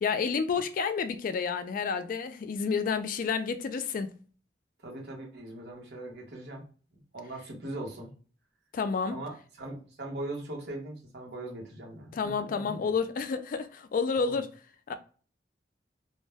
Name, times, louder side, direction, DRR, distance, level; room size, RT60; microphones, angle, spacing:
voice 1, 0.0-4.2 8.7-9.2 12.1-14.5 14.9-15.0, left 5 dB, 50° left, 0.3 m, -30 dB
voice 2, 4.8-6.6 7.1-8.1 9.1-12.9 14.1-14.4, right 1 dB, 65° right, 1.1 m, -40 dB
2.5 x 2.1 x 3.3 m
head